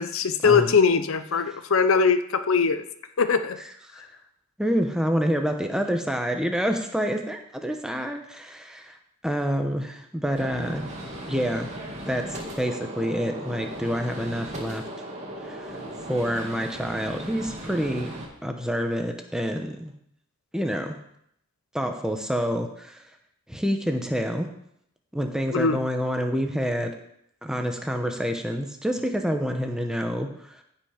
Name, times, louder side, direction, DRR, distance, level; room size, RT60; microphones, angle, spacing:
voice 1, 0.0-2.8 3.2-3.6 25.5-25.8, left 5 dB, 65° left, 10 dB, 0.6 m, -21 dB
voice 2, 4.6-8.9 9.2-10.9 11.3-11.7 12.1-14.8 15.4-15.8 16.1-18.1 18.4-19.9 20.5-21.0 21.7-23.0 23.5-24.5 25.1-26.9 27.4-30.6, equal, 5° right, 4 dB, 0.9 m, -27 dB
Gunshot gunfire, 10.4-18.2, right 1 dB, 30° right, 2.0 m, -37 dB
15.0 x 5.6 x 5.1 m, 0.73 s
head